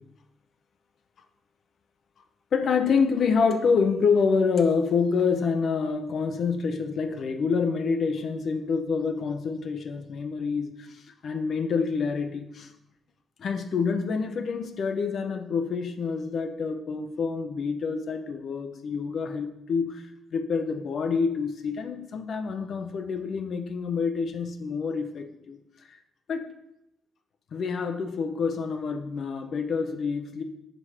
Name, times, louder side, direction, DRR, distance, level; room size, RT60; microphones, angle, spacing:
voice 1, 2.5-12.7 13.4-20.0 20.3-25.6 26.3-26.5 27.5-30.4, left 5 dB, 55° left, 7 dB, 0.6 m, -27 dB
5.2 x 4.2 x 4.9 m, 0.83 s
wide cardioid pair, 160°, 0 cm